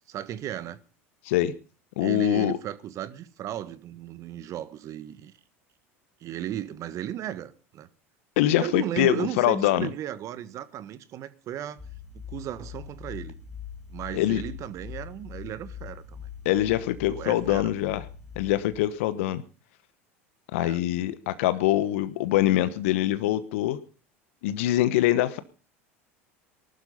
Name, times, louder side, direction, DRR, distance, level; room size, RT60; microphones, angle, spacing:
voice 1, 0.1-0.8 2.0-5.3 6.2-7.9 8.6-11.8 12.1-13.4 13.9-16.3 17.1-17.7 20.6-20.8, right 12 dB, 45° right, 1.6 m, -35 dB
voice 2, 2.0-2.6 8.4-9.9 14.1-14.4 16.4-18.0 18.4-19.4 20.5-23.8 24.4-25.4, left 14 dB, 70° left, 1.2 m, -24 dB
sound 1, 11.8-18.8, left 8 dB, ahead, 3.9 m, -42 dB
19.5 x 12.0 x 5.5 m
hypercardioid pair, 80°, 7 cm